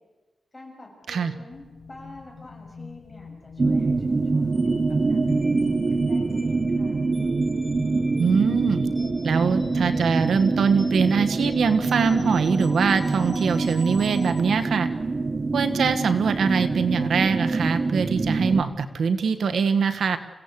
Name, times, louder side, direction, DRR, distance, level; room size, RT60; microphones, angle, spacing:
voice 1, 0.5-7.0, left 2 dB, 20° left, -1 dB, 7.0 m, -47 dB
sound 1, 1.5-10.4, left 4 dB, 50° left, 4.8 m, -46 dB
sound 2, 3.6-18.6, right 3 dB, 30° right, 0.8 m, -25 dB
sound 3, 4.5-14.4, left 1 dB, 5° left, 6.0 m, -42 dB
voice 2, 8.2-8.9 9.2-14.9 15.5-20.2, right 5 dB, 75° right, 9 dB, 1.3 m, -23 dB
27.5 x 16.5 x 8.3 m, 1.2 s
wide cardioid pair, 145°, 0 cm